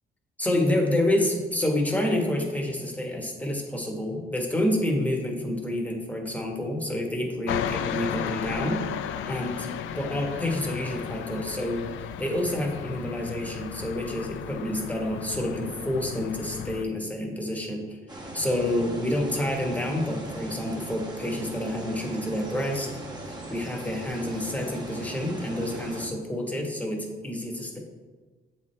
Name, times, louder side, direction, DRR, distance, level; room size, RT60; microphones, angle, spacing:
voice 1, 0.4-8.8 9.3-11.9 12.2-18.0 18.3-22.9 23.2-27.8, left 1 dB, 5° left, 0 dB, 1.2 m, -28 dB
sound 1, 7.5-16.8, left 9 dB, 80° left, 0.4 m, -34 dB
sound 2, 18.1-26.1, right 1 dB, 20° right, 1.1 m, -39 dB
7.2 x 4.4 x 3.3 m, 1.3 s
cardioid pair, 90°, 20 cm